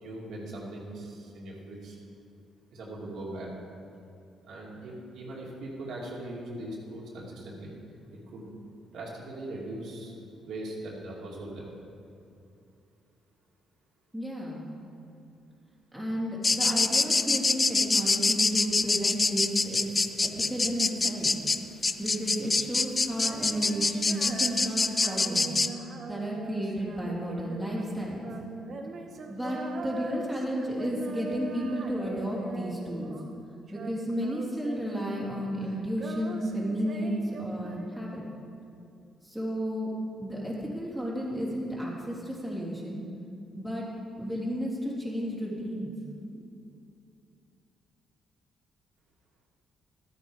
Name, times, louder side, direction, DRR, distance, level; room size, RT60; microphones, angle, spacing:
voice 1, 0.0-2.0 2.7-3.5 4.5-7.8 8.1-8.5 8.9-10.1 10.4-11.8, right 1 dB, 75° right, -4 dB, 2.4 m, -40 dB
voice 2, 14.1-14.6 15.9-19.9 20.2-21.3 22.0-25.6 26.1-28.3 29.3-33.1 33.7-38.2 39.2-39.9 40.2-43.0 43.6-43.9 44.2-45.9 46.3-46.4, equal, ahead, -6 dB, 3.0 m, -32 dB
sound 1, 16.4-25.7, left 3 dB, 25° left, 0.4 m, -25 dB
Female singing, 23.1-33.4 33.7-35.4 35.6-38.3, right 3 dB, 50° right, 1.0 m, -42 dB
12.5 x 9.0 x 4.9 m, 2.6 s
cardioid pair, 90°, 0 cm